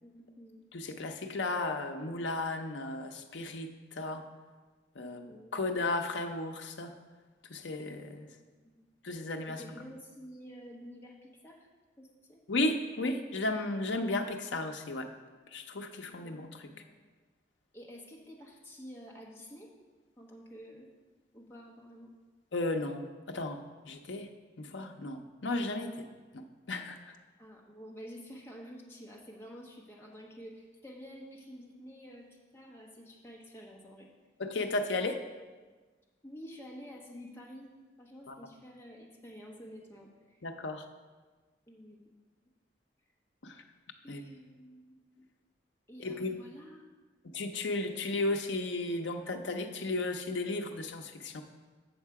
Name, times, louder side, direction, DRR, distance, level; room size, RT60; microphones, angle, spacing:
voice 1, 0.0-0.6 5.0-5.6 8.2-8.9 9.5-11.7 12.0-12.4 16.1-16.3 16.6-16.9 17.7-19.7 20.2-20.9 21.3-22.1 27.4-34.1 36.2-37.7 38.0-40.4 41.7-42.1 44.0-45.2 45.9-47.0, equal, 15° left, -2 dB, 1.1 m, -50 dB
voice 2, 0.7-4.3 5.0-6.9 7.5-8.3 9.0-9.6 12.5-15.1 15.5-16.7 22.5-23.6 23.9-24.3 24.6-26.1 26.3-27.0 34.4-35.2 38.3-38.4 40.4-40.8 43.4-43.6 44.1-44.2 46.0-46.4 47.2-51.4, left 2 dB, 85° left, 5 dB, 0.7 m, -34 dB
7.8 x 6.5 x 4.7 m, 1.3 s
head